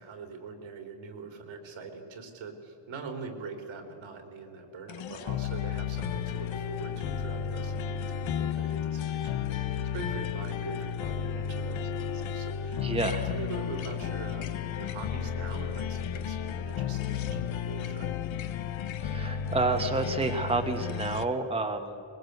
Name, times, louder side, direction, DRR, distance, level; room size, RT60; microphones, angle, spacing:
voice 1, 0.0-18.1, right 4 dB, 85° right, 5 dB, 3.5 m, -43 dB
sound 1, 4.9-21.2, left 8 dB, 80° left, 1.1 m, -33 dB
voice 2, 12.8-13.3 19.0-22.0, right 3 dB, 10° right, 4 dB, 1.3 m, -29 dB
22.0 x 21.0 x 8.1 m, 3.0 s
wide cardioid pair, 140°, 46 cm